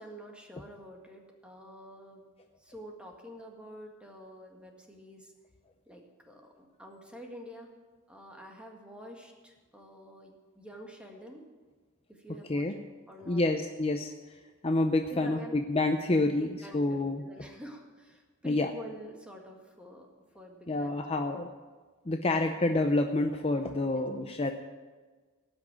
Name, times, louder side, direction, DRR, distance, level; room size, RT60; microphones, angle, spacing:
voice 1, 0.0-2.2 2.6-5.3 5.9-7.7 8.1-11.4 12.1-12.7 13.1-13.7 15.1-15.6 16.4-20.1 20.3-21.2 23.7-24.1, equal, 5° right, 1 dB, 1.8 m, -48 dB
voice 2, 13.3-14.1 14.6-16.5 16.7-17.2 18.4-18.7 20.7-21.5 22.1-24.5, left 2 dB, 30° left, 5 dB, 0.6 m, -28 dB
18.0 x 6.2 x 8.9 m, 1.4 s
head